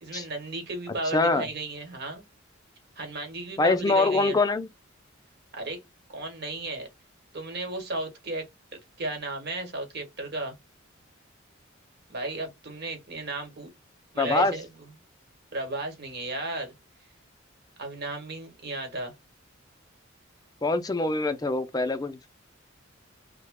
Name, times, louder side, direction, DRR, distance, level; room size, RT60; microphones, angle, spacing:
voice 1, 0.0-2.3 3.0-4.4 5.5-5.8 6.1-6.9 7.3-8.4 9.0-10.5 12.1-13.7 14.1-14.7 15.5-16.7 17.8-19.1, right 2 dB, 55° right, 1.1 m, -34 dB
voice 2, 1.1-1.5 3.6-4.7 14.2-14.6 20.6-22.3, left 3 dB, 20° left, 0.4 m, -24 dB
2.7 x 2.1 x 3.4 m
head